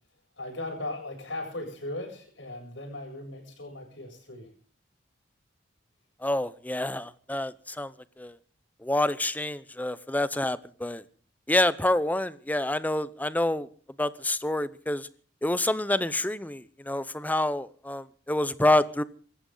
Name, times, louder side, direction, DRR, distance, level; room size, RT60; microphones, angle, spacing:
voice 1, 0.4-4.5, left 2 dB, 80° left, 7.9 m, -38 dB
voice 2, 6.2-8.4 8.8-11.0 11.5-13.7 14.0-15.1 15.4-19.0, left 1 dB, 10° left, 0.7 m, -27 dB
25.0 x 14.5 x 3.9 m
head